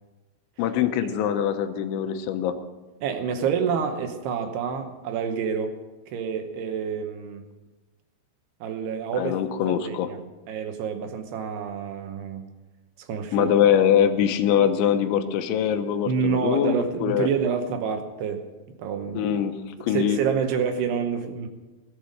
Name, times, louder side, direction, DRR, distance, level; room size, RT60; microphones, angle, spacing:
voice 1, 0.6-2.6 9.2-10.1 13.3-17.3 19.2-19.5 19.8-20.2, left 9 dB, 85° left, 8 dB, 3.3 m, -23 dB
voice 2, 3.0-5.8 6.1-7.4 8.6-9.4 9.7-10.2 10.5-12.4 13.0-13.5 16.1-18.4 18.8-19.3 19.9-21.5, right 6 dB, 75° right, 6 dB, 2.8 m, -28 dB
17.5 x 8.2 x 6.5 m, 1.2 s
omnidirectional pair, 5.2 m